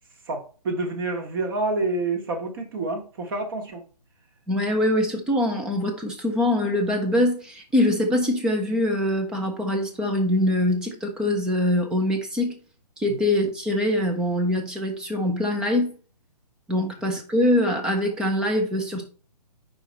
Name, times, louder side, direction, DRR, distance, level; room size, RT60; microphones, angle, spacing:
voice 1, 0.3-3.8 13.1-13.2 16.8-16.9, right 2 dB, 35° right, 1.5 m, -28 dB
voice 2, 4.5-12.5 13.0-15.9 16.7-19.1, left 1 dB, 5° right, 0.4 m, -23 dB
5.0 x 4.4 x 4.2 m
hypercardioid pair, 150°, 21 cm